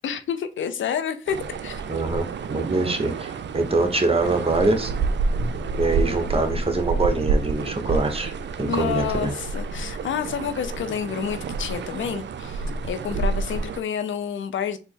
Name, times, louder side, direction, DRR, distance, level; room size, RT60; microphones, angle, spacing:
voice 1, 0.0-1.8 8.7-14.8, left 8 dB, 85° left, 0.4 m, -29 dB
sound 1, 1.3-13.8, right 4 dB, 70° right, 0.4 m, -29 dB
voice 2, 1.9-4.9 5.8-8.3 8.6-9.3 13.1-13.2, right 3 dB, 30° right, 1.0 m, -24 dB
4.2 x 2.0 x 3.6 m
cardioid pair, 45°, 19 cm